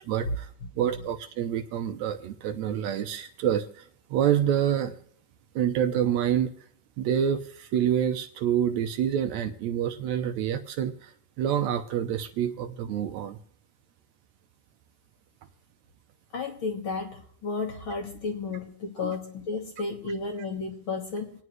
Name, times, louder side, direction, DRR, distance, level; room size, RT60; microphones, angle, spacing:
voice 1, 0.0-0.5 0.8-3.9 4.1-5.0 5.6-6.5 7.0-11.1 11.4-13.4 19.0-19.1, right 9 dB, 75° right, 7 dB, 1.9 m, -27 dB
voice 2, 16.3-21.3, left 4 dB, 50° left, 2 dB, 1.9 m, -33 dB
27.0 x 9.5 x 3.2 m, 0.65 s
omnidirectional pair, 3.5 m